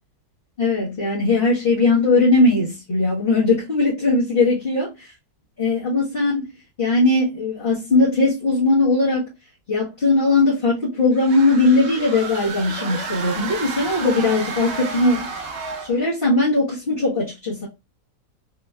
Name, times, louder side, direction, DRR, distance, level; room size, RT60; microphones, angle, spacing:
voice 1, 0.6-4.9 5.6-6.5 6.8-9.3 9.7-15.3 15.9-17.7, left 2 dB, 35° left, 1.3 m, -19 dB
sound 1, 11.1-16.1, right 4 dB, 55° right, 0.7 m, -31 dB
3.8 x 2.9 x 2.3 m
omnidirectional pair, 1.8 m